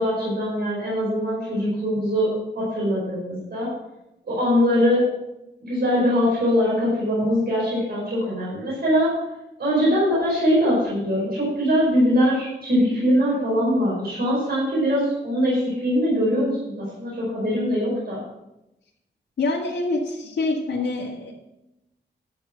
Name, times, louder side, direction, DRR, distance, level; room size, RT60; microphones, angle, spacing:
voice 1, 0.0-2.3 2.5-3.7 4.3-5.1 5.6-9.2 9.6-18.2, equal, 60° right, -6 dB, 4.9 m, -22 dB
voice 2, 19.4-21.3, left 2 dB, 85° left, -5 dB, 2.1 m, -25 dB
11.5 x 7.4 x 5.8 m, 0.91 s
wide cardioid pair, 160°, 19 cm